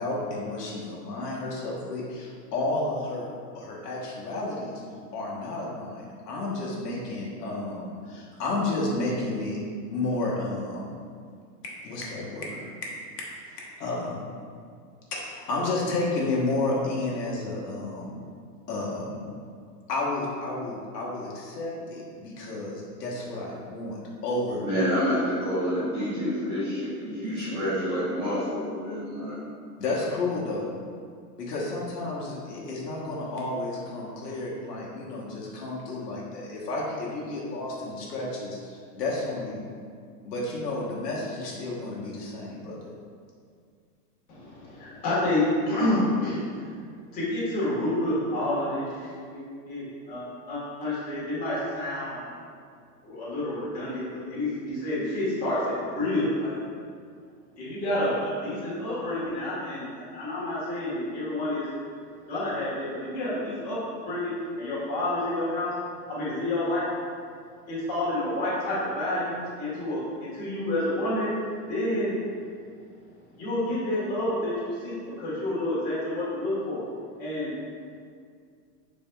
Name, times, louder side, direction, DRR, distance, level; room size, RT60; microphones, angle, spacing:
voice 1, 0.0-3.3 3.5-4.8 5.1-9.6 9.9-11.0 11.8-12.7 13.5-14.3 15.1-18.2 18.7-19.3 19.9-24.0 24.2-24.6 27.2-27.6 29.8-30.7 31.4-39.6 40.2-42.9, left 2 dB, 80° left, -4 dB, 1.2 m, -31 dB
voice 2, 24.6-29.4, equal, 15° right, -11 dB, 0.5 m, -28 dB
voice 3, 44.3-46.4 47.1-52.3 53.0-55.6 55.9-56.6 57.6-61.7 62.3-63.8 64.0-65.7 66.1-66.8 67.7-72.2 73.4-76.8 77.2-77.5, left 1 dB, 20° left, -9 dB, 1.2 m, -29 dB
5.5 x 4.1 x 2.2 m, 2.1 s
supercardioid pair, 160°, 47 cm